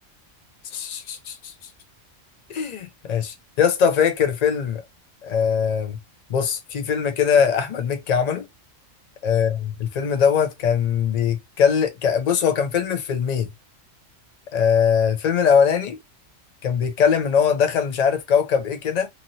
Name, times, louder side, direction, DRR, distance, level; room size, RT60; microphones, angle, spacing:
voice 1, 0.7-1.4 2.5-4.8 5.2-6.0 6.3-8.4 9.2-13.5 14.5-16.0 16.6-19.1, left 7 dB, 65° left, 0.4 m, -21 dB
2.7 x 2.7 x 2.7 m
omnidirectional pair, 1.3 m